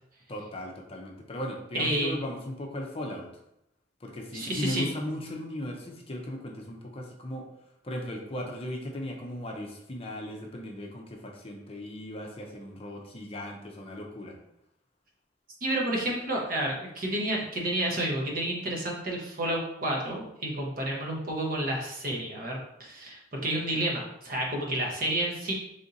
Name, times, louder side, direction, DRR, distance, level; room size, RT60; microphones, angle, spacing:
voice 1, 0.3-3.3 4.0-7.5 7.8-14.4, left 1 dB, 35° left, 1 dB, 0.6 m, -37 dB
voice 2, 1.8-2.1 4.3-4.9 15.6-25.5, right 1 dB, 55° right, -1 dB, 0.9 m, -30 dB
3.5 x 2.6 x 3.9 m, 0.80 s
head